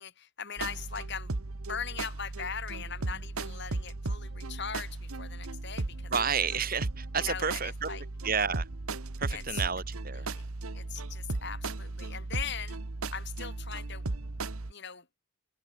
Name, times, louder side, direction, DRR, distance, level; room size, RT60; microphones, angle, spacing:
voice 1, 0.0-1.4 1.7-6.1 7.3-8.0 9.3-9.6 10.3-10.5 10.7-12.8 13.1-14.0 14.7-15.0, left 7 dB, 50° left, 3.1 m, -40 dB
sound 1, 0.6-14.7, right 2 dB, 85° right, 1.3 m, -36 dB
voice 2, 6.1-7.9 8.2-8.7 9.2-10.3, right 6 dB, 40° right, 3.9 m, -30 dB
head